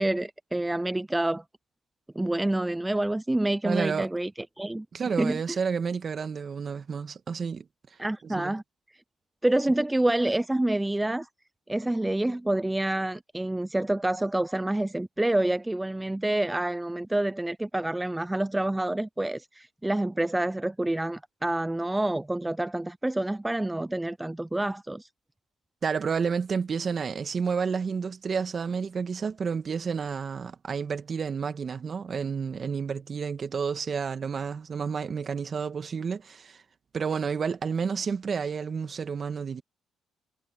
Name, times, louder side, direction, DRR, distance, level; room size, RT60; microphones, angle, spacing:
voice 1, 0.0-1.4 2.2-4.3 4.6-4.9 5.2-5.6 8.0-8.6 9.4-11.3 11.7-25.1, right 1 dB, 10° right, 0.3 m, -27 dB
voice 2, 3.6-4.1 4.9-7.7 8.3-8.5 25.8-36.6 36.9-39.6, right 6 dB, 45° right, 1.6 m, -30 dB
cardioid pair, 90°, 0 cm